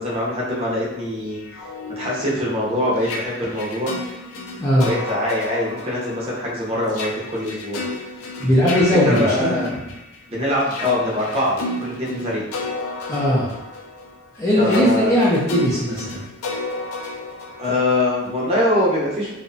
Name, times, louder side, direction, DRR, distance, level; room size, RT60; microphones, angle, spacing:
voice 1, 0.0-1.4 2.0-3.9 4.8-7.8 9.0-9.7 10.3-12.4 14.6-15.1 17.6-19.3, left 1 dB, 30° right, -6 dB, 0.6 m, -23 dB
sound 1, 1.3-10.2 10.6-18.4, left 2 dB, 85° left, 0.4 m, -32 dB
voice 2, 4.6-4.9 8.4-9.7 13.1-13.6 14.3-16.2, equal, 15° left, -7 dB, 0.4 m, -18 dB
2.6 x 2.1 x 2.6 m, 0.92 s
head